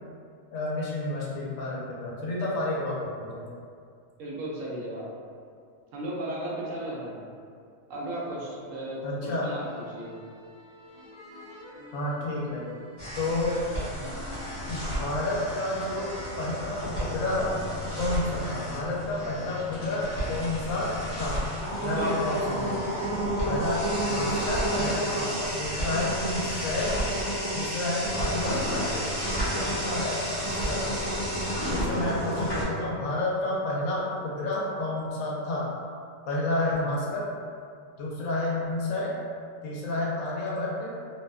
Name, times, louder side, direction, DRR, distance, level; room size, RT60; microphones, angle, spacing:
voice 1, 0.5-3.4 9.0-9.5 11.9-12.6 13.1-13.6 13.9-14.1 14.7-17.5 18.0-21.4 21.8-23.0 23.5-27.0 27.5-29.1 29.5-30.9 31.7-35.7 36.3-37.3 38.0-39.1 39.6-40.9, left 2 dB, 75° left, -4 dB, 0.9 m, -30 dB
voice 2, 4.2-5.1 5.9-7.3 7.9-10.2 22.0-22.1 31.6-32.1, right 1 dB, 80° right, -4 dB, 1.0 m, -35 dB
sound 1, 9.1-18.6, left 1 dB, 45° right, 0.6 m, -48 dB
sound 2, 13.0-32.6, equal, 20° left, 0.9 m, -31 dB
2.7 x 2.2 x 2.3 m, 2.3 s
omnidirectional pair, 1.4 m